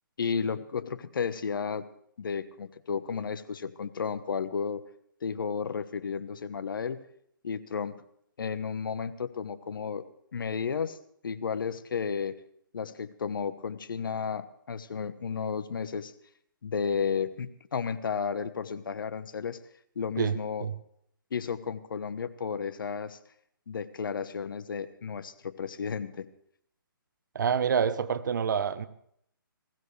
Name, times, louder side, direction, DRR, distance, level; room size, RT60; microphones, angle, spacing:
voice 1, 0.2-1.9 2.2-4.8 5.2-7.0 7.4-8.0 8.4-10.0 10.3-11.0 11.2-12.4 12.7-16.1 16.6-19.6 19.9-20.7 21.3-23.2 23.7-26.3, left 6 dB, 65° left, 1.3 m, -33 dB
voice 2, 27.3-28.9, right 7 dB, 55° right, 1.1 m, -27 dB
21.0 x 16.5 x 3.4 m
hypercardioid pair, 155°, 12 cm